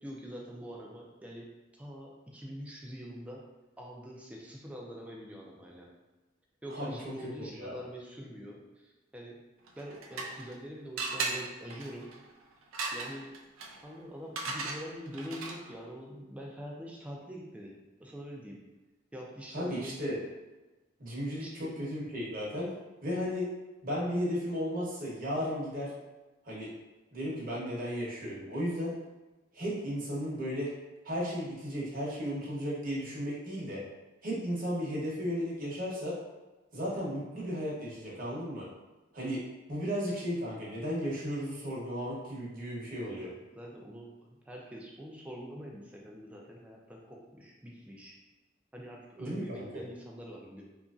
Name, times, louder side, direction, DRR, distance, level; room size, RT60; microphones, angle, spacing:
voice 1, 0.0-1.5 1.8-3.4 3.8-5.9 6.6-9.4 9.8-12.1 12.9-13.2 13.8-17.7 18.0-18.6 19.1-20.2 21.4-21.7 43.0-48.2 48.7-50.6, equal, 5° right, -2 dB, 0.4 m, -44 dB
voice 2, 7.4-7.8 19.5-20.2 21.0-22.7 23.0-23.4 23.8-25.9 26.4-26.7 27.1-28.9 29.5-30.7 31.0-33.8 34.2-36.1 36.7-38.6 39.1-39.4 39.7-43.3 49.2-49.7, equal, 45° right, -6 dB, 0.9 m, -34 dB
sound 1, 9.7-10.6 11.0-15.8, right 3 dB, 85° right, 0.4 m, -38 dB
2.9 x 2.5 x 2.3 m, 1.1 s
head